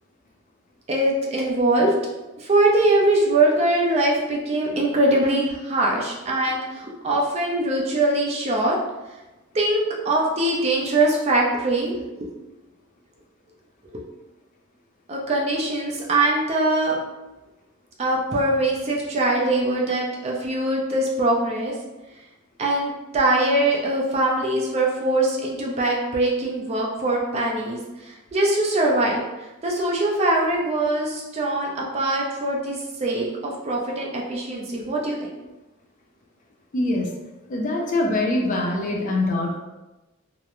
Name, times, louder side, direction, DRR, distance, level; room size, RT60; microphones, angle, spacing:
voice 1, 0.9-1.9 2.4-8.8 9.5-12.4 15.1-17.0 18.0-21.7 22.6-29.2 29.6-35.3, right 2 dB, 30° right, -2 dB, 0.4 m, -22 dB
voice 2, 36.7-37.1 37.5-39.6, left 2 dB, 35° left, 0 dB, 0.4 m, -23 dB
2.4 x 2.1 x 2.9 m, 1.1 s
head